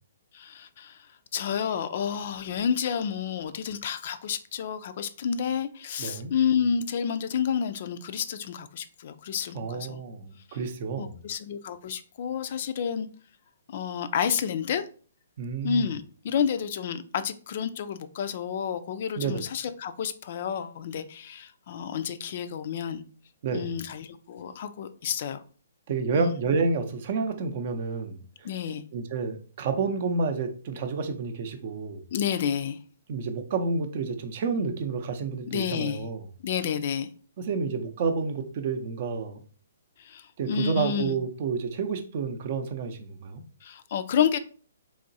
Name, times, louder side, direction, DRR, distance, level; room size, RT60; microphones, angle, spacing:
voice 1, 0.3-1.1 1.3-10.0 11.0-13.1 13.7-14.8 15.6-23.0 23.5-25.4 26.1-26.4 28.4-28.8 32.1-32.8 35.5-36.0 36.4-37.1 40.0-41.2 43.6-44.4, left 7 dB, 50° left, 0.3 m, -30 dB
voice 2, 6.0-6.3 9.5-11.2 15.4-15.9 19.2-19.4 23.4-23.8 25.9-28.5 28.9-32.0 33.1-36.2 37.4-39.4 40.4-43.4, right 4 dB, 45° right, 0.5 m, -30 dB
3.5 x 3.0 x 2.6 m
hypercardioid pair, 135°, 0 cm